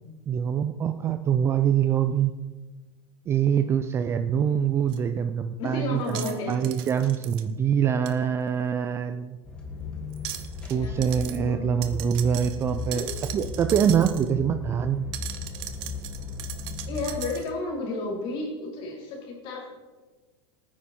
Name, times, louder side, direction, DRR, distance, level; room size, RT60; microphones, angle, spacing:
voice 1, 0.3-2.3 3.3-9.4 10.7-13.1 13.3-15.1, right 8 dB, 15° right, 10 dB, 0.4 m, -24 dB
sound 1, 4.9-5.0 6.1-7.4 8.1-8.2 10.1-10.8 11.0-11.4 11.8-14.3 15.1-17.5, right 13 dB, 50° right, 1.1 m, -38 dB
voice 2, 5.6-6.6 10.7-11.7 12.9-13.1 16.9-19.7, left 2 dB, 35° left, -1 dB, 3.7 m, -32 dB
sound 2, 9.4-17.2, left 5 dB, 5° left, 1.8 m, -36 dB
18.0 x 9.7 x 4.3 m, 1.3 s
supercardioid pair, 165°, 15 cm